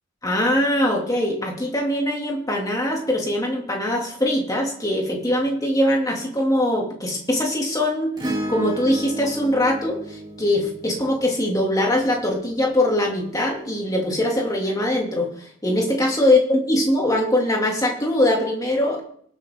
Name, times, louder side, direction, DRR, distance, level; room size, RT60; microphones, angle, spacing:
voice 1, 0.2-8.1 8.5-15.3 15.6-19.0, left 1 dB, 20° left, -1 dB, 2.7 m, -22 dB
Acoustic guitar / Strum, 8.2-12.8 14.6-14.7, right 1 dB, 20° right, 3.2 m, -33 dB
19.0 x 7.7 x 3.8 m, 0.63 s
head